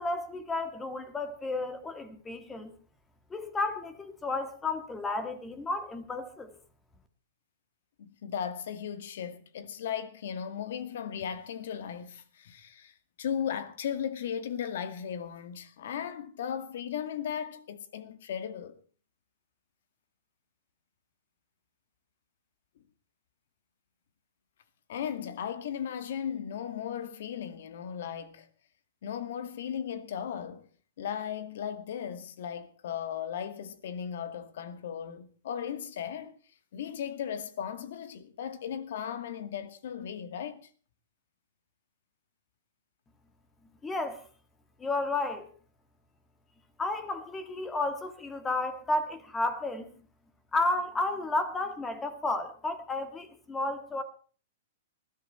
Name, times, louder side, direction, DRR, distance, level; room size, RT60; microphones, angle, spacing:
voice 1, 0.0-2.7 3.3-6.6 43.8-44.2 44.8-45.5 46.8-49.9 50.5-54.0, left 2 dB, 10° left, 1.7 m, -32 dB
voice 2, 8.0-18.8 24.9-28.5 29.0-30.7 31.0-36.3 36.7-40.7, left 8 dB, 70° left, 2.1 m, -36 dB
20.0 x 13.0 x 4.4 m
hypercardioid pair, 155°, 0 cm